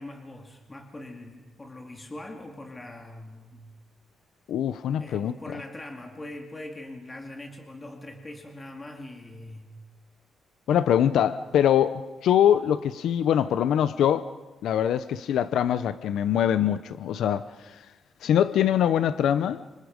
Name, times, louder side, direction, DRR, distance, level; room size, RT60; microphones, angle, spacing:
voice 1, 0.0-3.7 5.0-9.7, left 1 dB, 15° left, 3 dB, 2.2 m, -42 dB
voice 2, 4.5-5.3 10.7-14.3 14.6-17.8 18.2-19.6, left 10 dB, 85° left, 13 dB, 0.8 m, -23 dB
29.5 x 26.5 x 5.3 m, 1.1 s
wide cardioid pair, 175°, 0 cm